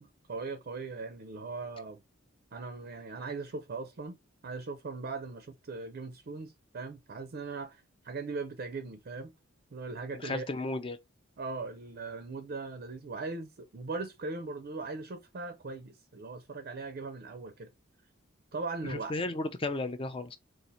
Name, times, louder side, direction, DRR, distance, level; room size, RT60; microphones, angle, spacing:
voice 1, 0.0-2.0 2.5-4.2 4.4-9.3 9.7-10.4 11.4-17.7 18.5-19.2, right 3 dB, 45° right, 0.5 m, -39 dB
voice 2, 10.1-11.0 18.8-20.4, left 2 dB, 25° left, 0.5 m, -34 dB
4.0 x 2.5 x 4.2 m
head